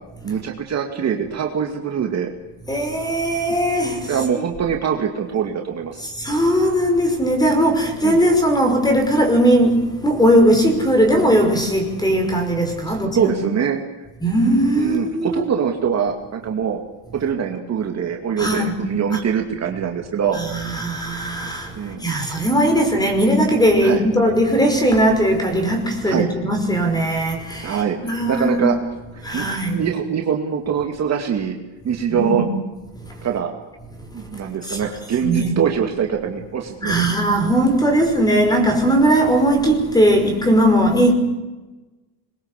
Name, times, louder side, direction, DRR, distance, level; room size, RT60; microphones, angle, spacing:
voice 1, 0.2-2.3 4.1-6.1 8.0-8.2 12.8-13.8 14.8-16.8 17.1-20.4 21.7-22.1 23.8-24.0 26.0-26.3 27.6-28.8 29.1-29.5 29.7-31.6 31.8-32.4 33.2-33.5 34.1-37.0, right 7 dB, 35° right, 2.4 m, -23 dB
voice 2, 2.7-4.2 6.0-13.5 14.2-15.4 18.4-18.8 19.1-19.2 20.3-28.7 29.2-29.8 32.1-32.5 33.0-33.2 34.0-34.4 34.7-34.8 35.2-35.6 36.8-41.1, right 1 dB, 10° left, 5.6 m, -19 dB
26.5 x 22.0 x 8.3 m
cardioid pair, 150°, 47 cm